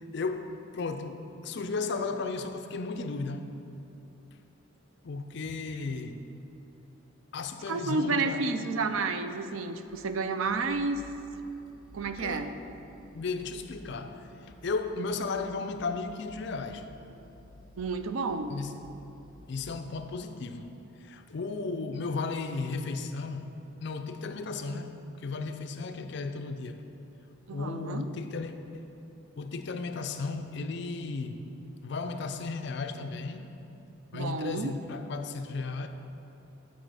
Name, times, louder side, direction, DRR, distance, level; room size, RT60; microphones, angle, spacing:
voice 1, 0.0-3.5 5.0-6.2 7.3-8.5 12.0-12.6 13.1-16.9 18.5-18.8 19.5-20.7 21.0-23.5 23.8-26.8 27.5-28.9 29.4-31.5 31.8-33.6 34.1-35.9, left 4 dB, 55° left, 7 dB, 0.4 m, -35 dB
voice 2, 7.7-11.0 11.9-12.5 17.8-18.5 27.5-28.1 34.1-34.7, right 3 dB, 75° right, 9 dB, 0.4 m, -30 dB
sound 1, 9.9-19.9, left 1 dB, ahead, 1.1 m, -54 dB
10.0 x 4.0 x 4.8 m, 2.9 s
head